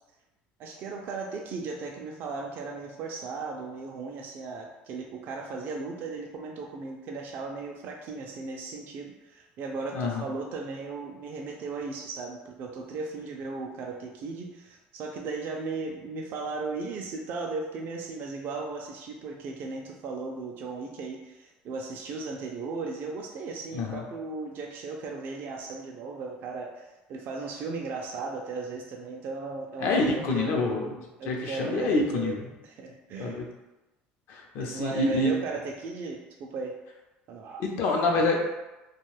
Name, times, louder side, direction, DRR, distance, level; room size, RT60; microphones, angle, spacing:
voice 1, 0.6-30.6 31.2-32.4 32.6-33.4 34.6-36.8 37.3-37.6, right 3 dB, 55° right, 0 dB, 0.4 m, -36 dB
voice 2, 29.8-30.9 31.3-32.5 33.2-33.5 34.3-35.3 37.6-38.4, left 2 dB, 65° left, 0 dB, 0.6 m, -26 dB
2.5 x 2.2 x 3.2 m, 1.1 s
supercardioid pair, 105°, 4 cm